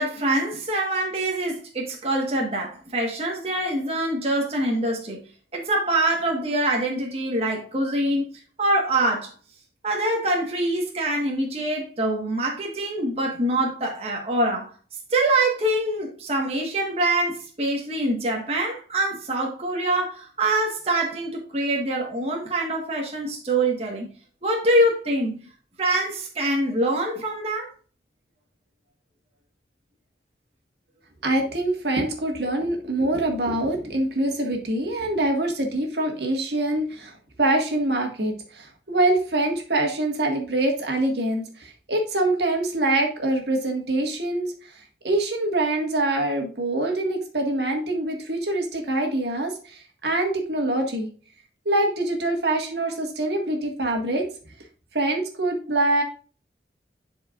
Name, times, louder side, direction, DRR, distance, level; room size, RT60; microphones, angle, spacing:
voice 1, 0.0-5.2 5.5-8.2 8.6-9.3 9.8-14.7 15.1-24.1 24.4-25.4 25.8-27.7, right 1 dB, 35° right, 1.4 m, -24 dB
voice 2, 31.2-37.1 37.4-44.7 45.0-51.1 51.7-54.3 54.9-56.0, right 2 dB, 70° right, 1.7 m, -24 dB
11.5 x 4.7 x 2.4 m
head